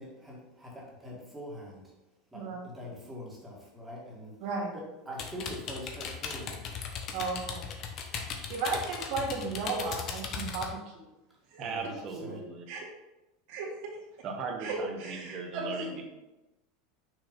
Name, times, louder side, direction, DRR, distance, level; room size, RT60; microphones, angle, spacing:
voice 1, 0.0-1.8 2.3-4.3 4.7-6.6 11.6-12.0 12.2-12.4, equal, 10° right, -4 dB, 2.0 m, -43 dB
voice 2, 4.4-4.8 7.1-7.6 8.5-11.1 11.5-11.7 12.7-12.8 13.5-13.9 14.6-15.9, right 3 dB, 60° right, -3 dB, 2.0 m, -35 dB
sound 1, 5.2-10.7, left 6 dB, 40° left, 0.9 m, -37 dB
voice 3, 11.6-12.7 14.2-16.0, right 4 dB, 40° right, 1 dB, 1.4 m, -38 dB
6.1 x 3.2 x 5.3 m, 1.0 s
supercardioid pair, 135°, 0 cm